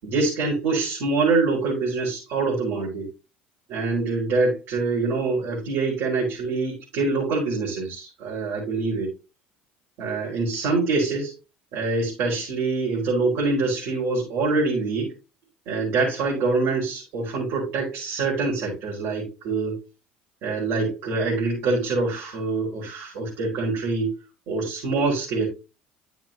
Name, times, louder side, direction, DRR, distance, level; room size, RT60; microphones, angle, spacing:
voice 1, 0.0-3.1 3.7-9.1 10.0-11.3 11.7-15.1 15.7-19.8 20.4-24.1 24.5-25.5, right 3 dB, 65° right, -6 dB, 4.9 m, -25 dB
10.5 x 7.2 x 2.7 m, 0.28 s
hypercardioid pair, 75°, 5 cm